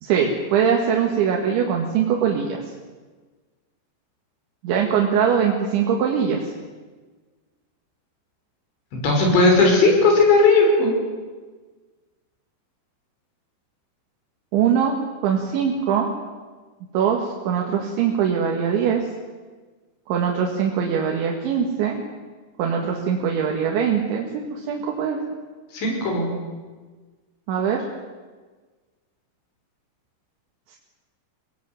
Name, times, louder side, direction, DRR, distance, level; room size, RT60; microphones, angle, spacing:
voice 1, 0.0-2.6 4.6-6.5 14.5-14.9 15.2-16.1 16.9-19.0 20.1-22.0 22.6-25.2 27.5-27.8, right 7 dB, 80° right, 0 dB, 4.3 m, -22 dB
voice 2, 9.0-10.9 25.7-26.3, left 3 dB, 75° left, 1 dB, 7.7 m, -16 dB
23.5 x 18.5 x 9.4 m, 1.4 s
omnidirectional pair, 5.3 m